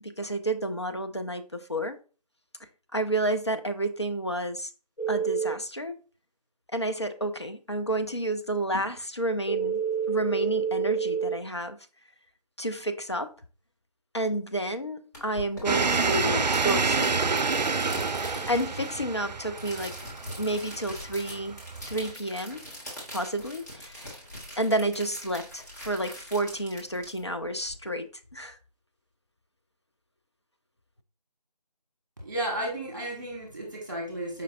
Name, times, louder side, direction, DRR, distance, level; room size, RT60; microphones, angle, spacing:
voice 1, 0.0-2.0 2.9-4.7 5.1-6.0 6.7-9.8 10.1-11.8 12.6-13.3 14.1-17.1 18.2-19.9 20.4-21.6 21.9-22.6 23.1-24.2 24.6-28.6, right 1 dB, 40° left, 0.4 m, -30 dB
sound 1, 5.0-5.5 9.5-11.3, right 7 dB, 75° left, 1.9 m, -28 dB
sound 2, 15.1-27.8, equal, 25° left, 1.3 m, -43 dB
sound 3, 15.6-22.1, right 4 dB, 90° right, 0.4 m, -28 dB
voice 2, 32.2-34.4, right 1 dB, 30° right, 1.4 m, -33 dB
5.0 x 3.2 x 2.6 m
figure-of-eight pair, 165°, 21 cm